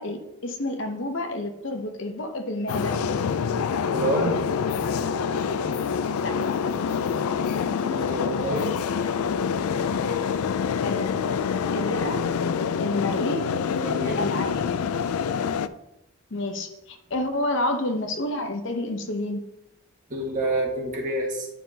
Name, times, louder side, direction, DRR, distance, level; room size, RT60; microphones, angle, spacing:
voice 1, 0.0-3.0 6.2-6.4 10.8-11.1 11.7-12.2 12.8-13.4 14.1-14.5 16.3-19.4, left 1 dB, 55° left, 6 dB, 0.8 m, -29 dB
sound 1, 2.7-15.7, left 6 dB, 80° left, 0.4 m, -26 dB
voice 2, 3.9-4.4 7.8-8.7 9.2-9.3 13.8-14.2 20.1-21.5, right 1 dB, 35° right, -2 dB, 1.6 m, -27 dB
9.3 x 5.6 x 2.8 m, 0.89 s
head